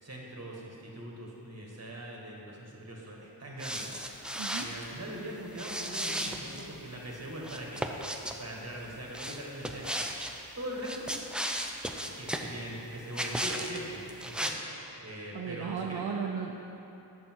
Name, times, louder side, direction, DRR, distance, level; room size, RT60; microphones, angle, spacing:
voice 1, 0.0-3.9 4.5-7.8 8.4-11.1 12.1-16.2, right 1 dB, 35° right, -2 dB, 1.6 m, -41 dB
sound 1, 3.6-4.8 5.5-6.7 7.4-8.4 9.1-10.3 10.8-12.5 13.1-13.8 14.1-14.5, equal, ahead, 0.5 m, -35 dB
voice 2, 4.4-4.7 15.3-16.6, right 6 dB, 60° right, 0 dB, 0.6 m, -35 dB
8.3 x 6.6 x 4.6 m, 2.9 s
wide cardioid pair, 65°, 44 cm